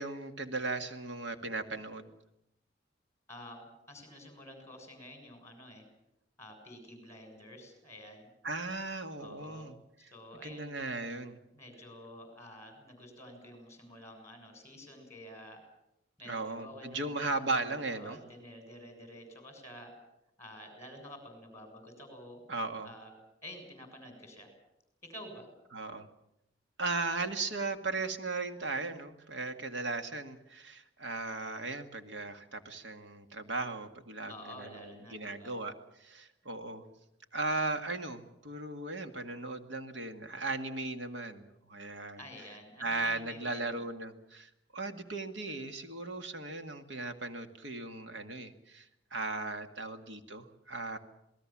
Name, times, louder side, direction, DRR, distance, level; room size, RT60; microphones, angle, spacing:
voice 1, 0.0-2.1 8.4-9.8 10.4-11.4 16.3-18.2 22.5-22.9 25.7-26.1 26.8-36.8 37.3-42.2 42.8-51.0, right 3 dB, 70° right, 7 dB, 1.9 m, -37 dB
voice 2, 3.3-5.8 6.4-8.3 9.2-9.7 10.0-10.8 11.5-15.6 16.2-19.9 20.4-22.4 22.8-23.1 23.4-24.5 25.0-25.5 34.3-35.5 42.2-43.7, left 1 dB, 15° left, 5 dB, 7.1 m, -49 dB
27.5 x 19.5 x 7.4 m, 0.85 s
head